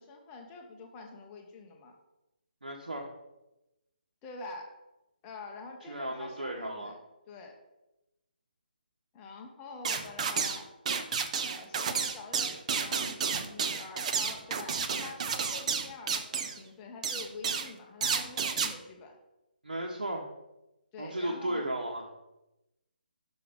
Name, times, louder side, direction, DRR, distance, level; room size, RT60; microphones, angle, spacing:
voice 1, 0.0-1.9 4.2-4.7 5.2-7.0 7.3-7.5 9.1-10.7 11.4-19.2 20.9-21.7, left 3 dB, 20° left, 2 dB, 1.0 m, -46 dB
voice 2, 2.6-3.1 5.9-6.9 19.6-20.3 21.0-22.1, right 1 dB, 90° right, -1 dB, 1.1 m, -35 dB
sound 1, 9.8-10.6 10.9-16.6 17.0-17.7 18.0-18.7, right 6 dB, 45° right, 0.7 m, -31 dB
6.2 x 5.6 x 5.2 m, 0.96 s
figure-of-eight pair, 150°, 5 cm